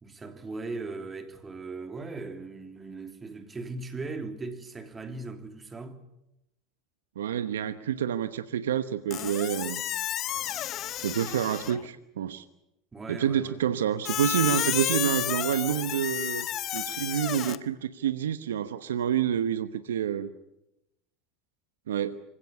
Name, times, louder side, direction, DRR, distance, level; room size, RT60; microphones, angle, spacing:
voice 1, 0.0-6.0 12.9-13.6, right 3 dB, 20° right, 3.3 m, -38 dB
voice 2, 7.2-9.8 11.0-12.4 13.1-16.5 16.7-20.3 21.9-22.2, right 9 dB, 85° right, 1.0 m, -28 dB
Squeak, 9.1-11.9 14.0-17.6, left 12 dB, 45° left, 1.2 m, -31 dB
26.0 x 17.0 x 10.0 m
hypercardioid pair, 90°, 0 cm